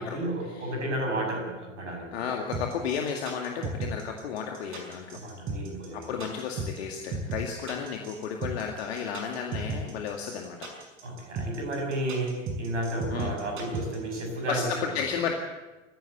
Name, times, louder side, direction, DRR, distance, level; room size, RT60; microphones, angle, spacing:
voice 1, 0.0-2.1 5.1-6.1 11.0-14.7, right 1 dB, 70° right, 2 dB, 7.0 m, -32 dB
voice 2, 2.1-5.2 5.9-10.6 13.1-13.3 14.5-15.3, left 7 dB, 55° left, 2 dB, 2.2 m, -33 dB
sound 1, 2.5-14.2, right 4 dB, 35° right, 6.2 m, -35 dB
22.0 x 15.5 x 8.0 m, 1.2 s
figure-of-eight pair, 90°, 37 cm